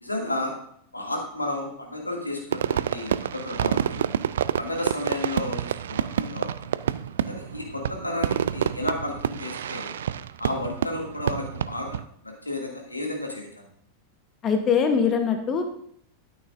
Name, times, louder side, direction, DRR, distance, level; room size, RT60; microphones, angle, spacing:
voice 1, 0.0-0.6 0.9-4.1 4.6-6.7 7.3-9.9 10.4-12.0 12.2-13.7, left 1 dB, 85° left, 0 dB, 2.2 m, -32 dB
Fireworks, 2.5-12.0, right 9 dB, 60° right, 0.3 m, -28 dB
voice 2, 14.4-15.6, left 6 dB, 30° left, 6 dB, 1.0 m, -22 dB
13.0 x 8.8 x 2.6 m, 0.65 s
figure-of-eight pair, 90°, 0 cm